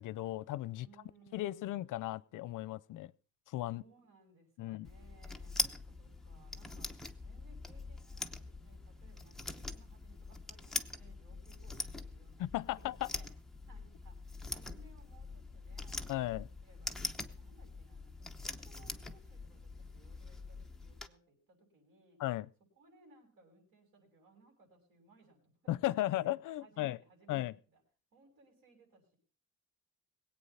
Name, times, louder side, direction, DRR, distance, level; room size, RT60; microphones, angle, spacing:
voice 1, 0.0-0.9 1.3-3.1 3.5-3.8 4.6-4.9 12.4-13.1 16.1-16.5 22.2-22.5 25.7-27.0 27.3-27.5, left 15 dB, 70° left, 22 dB, 0.6 m, -36 dB
voice 2, 0.8-1.8 3.7-12.5 12.8-13.2 13.7-14.2 14.5-16.3 16.6-16.9 17.4-22.2 22.7-26.2 26.6-27.8 28.1-29.2, right 3 dB, 75° right, 1 dB, 6.7 m, -64 dB
sound 1, 4.8-21.1, left 2 dB, ahead, 0.8 m, -43 dB
21.5 x 8.7 x 5.6 m, 0.37 s
cardioid pair, 170°, 32 cm